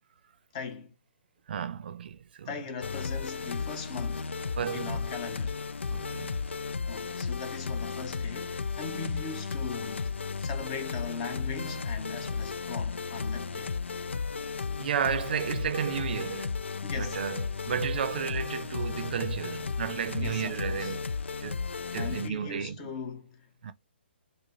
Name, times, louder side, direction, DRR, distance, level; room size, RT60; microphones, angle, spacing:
voice 1, 0.5-0.9 2.5-4.4 4.7-5.6 6.9-13.8 16.8-17.3 20.2-20.9 21.9-23.7, left 5 dB, 35° left, 1.0 m, -39 dB
voice 2, 1.5-2.5 4.6-5.0 5.9-6.4 14.8-16.6 16.9-21.0 21.4-21.7 21.9-22.9 23.6-23.7, right 8 dB, 55° right, 0.6 m, -33 dB
sound 1, 2.8-22.3, left 5 dB, 85° left, 0.4 m, -34 dB
5.2 x 2.1 x 3.8 m
hypercardioid pair, 140°, 6 cm